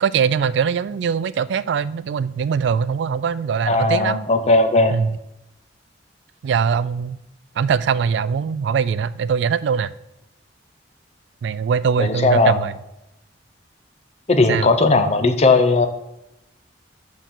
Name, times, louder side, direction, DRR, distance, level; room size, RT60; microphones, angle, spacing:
voice 1, 0.0-4.2 4.9-5.2 6.4-7.2 7.6-9.9 11.4-12.7 14.5-14.7, right 6 dB, 70° right, 17 dB, 0.3 m, -21 dB
voice 2, 3.7-5.0 12.0-12.6 14.3-15.9, left 3 dB, 35° left, 7 dB, 0.6 m, -17 dB
6.3 x 5.2 x 6.0 m, 0.89 s
head